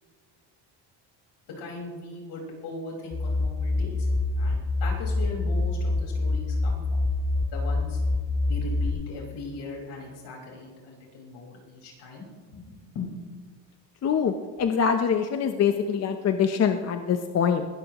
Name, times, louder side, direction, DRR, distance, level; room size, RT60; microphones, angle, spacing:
voice 1, 1.5-4.1 4.4-7.0 7.5-8.0 8.5-12.3 12.5-13.1, left 3 dB, 70° left, -2 dB, 5.2 m, -39 dB
sound 1, 3.1-8.9, left 2 dB, 20° left, 1.1 m, -26 dB
voice 2, 14.0-17.7, left 7 dB, 35° left, 6 dB, 0.8 m, -24 dB
20.5 x 14.5 x 3.0 m, 1.6 s
cardioid pair, 130°, 42 cm